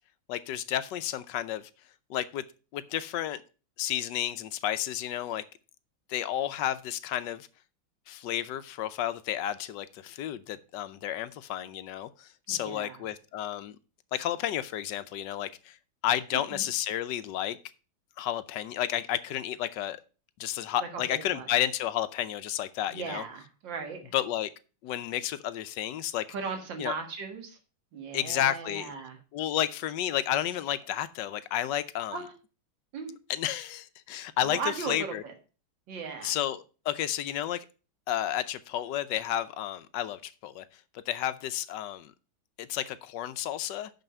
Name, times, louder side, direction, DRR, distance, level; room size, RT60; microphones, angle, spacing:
voice 1, 0.3-1.7 2.1-2.4 2.7-3.4 3.8-5.4 6.1-7.5 8.1-13.8 14.1-15.8 16.0-17.6 18.2-20.0 20.4-23.2 24.1-24.5 24.8-26.2 26.8-27.0 28.1-28.9 29.3-32.2 33.3-35.2 36.2-37.6 38.1-40.6 41.1-42.1 42.6-43.9, left 12 dB, 70° left, 14 dB, 1.2 m, -31 dB
voice 2, 12.5-13.0 16.5-16.7 20.8-21.5 22.9-24.0 26.3-27.6 27.9-29.2 32.1-32.3 32.9-33.1 34.5-35.3 35.9-36.3, right 5 dB, 65° right, 5 dB, 2.3 m, -37 dB
6.5 x 6.3 x 6.7 m, 0.35 s
omnidirectional pair, 2.2 m